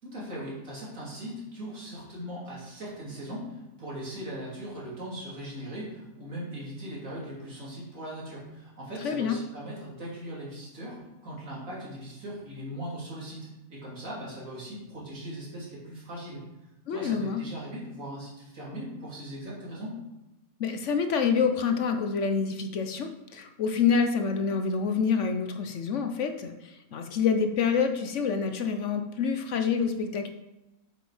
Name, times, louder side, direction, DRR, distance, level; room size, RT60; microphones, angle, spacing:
voice 1, 0.0-16.4 16.9-20.0, equal, 65° right, -5 dB, 3.3 m, -39 dB
voice 2, 9.0-9.4 16.9-17.4 20.6-30.3, left 6 dB, 65° left, 6 dB, 1.0 m, -27 dB
7.8 x 6.8 x 4.9 m, 1.0 s
omnidirectional pair, 1.5 m